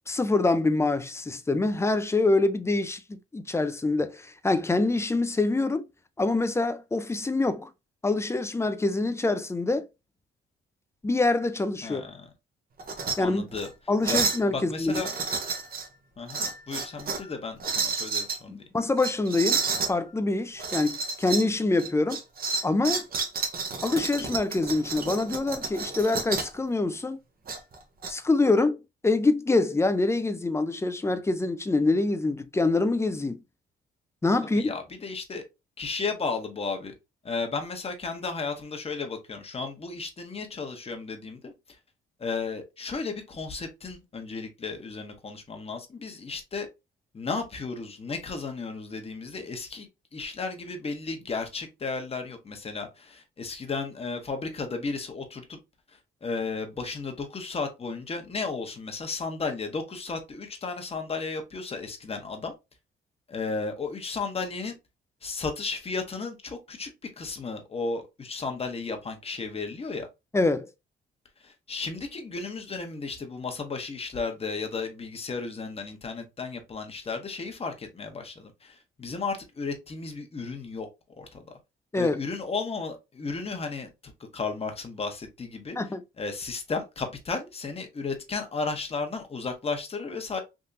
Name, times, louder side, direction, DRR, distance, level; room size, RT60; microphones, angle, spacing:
voice 1, 0.1-5.8 6.2-7.7 8.0-9.9 11.0-12.0 13.2-13.5 13.9-15.0 18.5-19.6 19.9-22.2 22.6-23.0 23.8-27.2 28.1-33.4 34.2-34.7 70.3-70.7 81.9-82.2 85.8-86.0, left 2 dB, 15° left, 0.4 m, -25 dB
voice 2, 11.8-12.3 13.2-13.7 14.1-14.2 14.5-15.1 16.2-18.6 34.5-35.4 35.8-36.9 37.2-41.8 42.2-46.7 47.1-55.6 55.9-62.5 63.3-64.7 65.2-66.9 67.2-70.1 71.4-80.9 81.2-81.4 82.0-85.8 86.2-90.4, left 4 dB, 30° left, 1.0 m, -34 dB
sound 1, 12.8-13.2 13.5-13.7 14.0-14.5 14.9-15.9 16.3-17.3 17.6-18.4 19.0-19.9 20.6-21.5 21.8-26.6 27.5-28.1, right 5 dB, 50° right, 0.9 m, -30 dB
3.6 x 2.7 x 2.6 m
cardioid pair, 90°, 20 cm